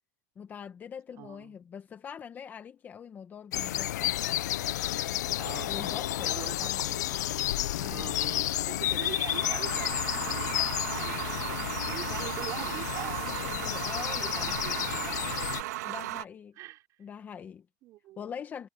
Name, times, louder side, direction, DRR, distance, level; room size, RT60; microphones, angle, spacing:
voice 1, 0.3-4.2 5.7-6.9 7.7-8.2 8.6-8.9 13.5-14.6 15.8-16.6 17.0-17.7 18.2-18.7, left 7 dB, 20° left, 1.4 m, -43 dB
voice 2, 1.2-1.6 5.4-7.5 7.8-11.4 11.8-13.4 13.8-16.0 16.6-16.9 17.8-18.2, right 16 dB, 35° right, 5.5 m, -44 dB
sound 1, 3.5-15.6, left 14 dB, 80° left, 0.5 m, -31 dB
sound 2, 9.3-16.2, right 16 dB, 70° right, 2.4 m, -36 dB
supercardioid pair, 155°, 9 cm